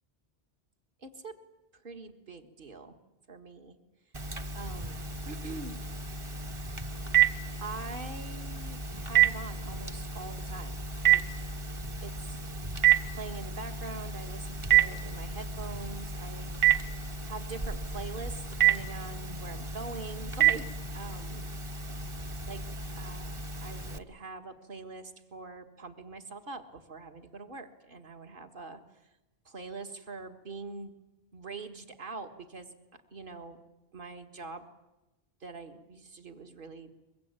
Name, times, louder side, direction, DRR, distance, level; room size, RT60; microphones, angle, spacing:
voice 1, 1.0-1.3 1.8-3.0 3.3-3.7 4.5-5.0 5.3-5.8 7.6-10.8 11.1-11.4 12.0-12.4 13.1-16.5 17.2-20.7 20.9-21.5 22.5-22.6 23.0-28.8 29.5-30.9 31.3-32.7 33.1-33.6 33.9-34.7 35.4-36.9, right 3 dB, 55° right, 6 dB, 1.9 m, -43 dB
Telephone, 4.1-24.0, right 10 dB, 30° right, 1.0 m, -30 dB
23.0 x 22.5 x 8.9 m, 0.97 s
omnidirectional pair, 1.1 m